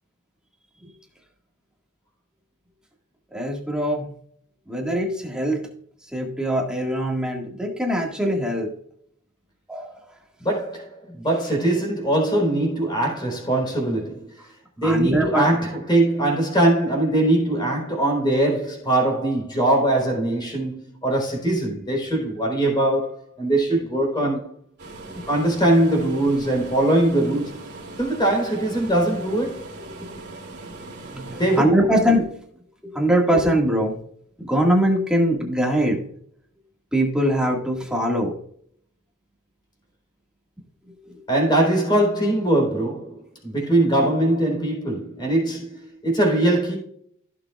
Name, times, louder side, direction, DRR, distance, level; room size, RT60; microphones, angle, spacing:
voice 1, 3.3-4.1 4.7-5.6 6.1-8.7 9.7-9.9 14.8-15.4 31.1-32.3 32.8-33.9 34.4-36.0 36.9-38.3 41.0-41.2, equal, 5° right, 1.7 m, -22 dB
voice 2, 10.4-14.3 14.8-24.5 25.3-27.6 28.0-29.6 31.4-31.8 41.3-46.8, right 1 dB, 20° left, 3.8 m, -21 dB
sound 1, 24.8-31.6, right 2 dB, 55° right, 2.5 m, -39 dB
16.0 x 6.9 x 2.4 m
head